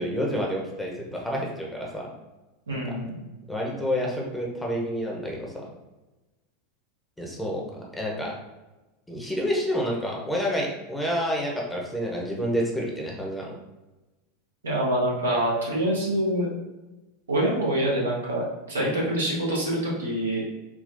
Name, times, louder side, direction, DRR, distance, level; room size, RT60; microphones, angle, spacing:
voice 1, 0.0-2.1 2.7-2.8 3.5-5.7 7.2-7.6 7.9-8.3 9.1-13.5 18.8-18.9, equal, 5° left, -2 dB, 0.8 m, -29 dB
voice 2, 2.7-3.1 14.6-16.5 17.3-20.4, right 1 dB, 85° right, -5 dB, 1.0 m, -25 dB
3.6 x 2.3 x 2.6 m, 1.1 s
hypercardioid pair, 85°, 0 cm